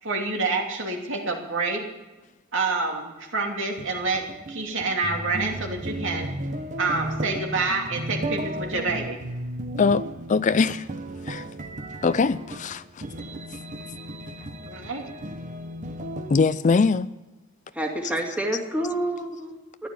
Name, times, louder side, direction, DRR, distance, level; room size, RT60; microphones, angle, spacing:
voice 1, 0.0-1.8 2.5-6.3 6.8-9.2 14.7-15.1, right 3 dB, 65° right, 2.9 m, -27 dB
sound 1, 3.8-16.4, right 1 dB, 40° right, 1.2 m, -34 dB
voice 2, 9.8-10.8 11.3-11.5 12.0-12.8 16.3-17.1, left 4 dB, 35° left, 0.4 m, -22 dB
voice 3, 17.7-19.9, right 1 dB, 5° right, 2.3 m, -28 dB
14.0 x 11.5 x 8.2 m
head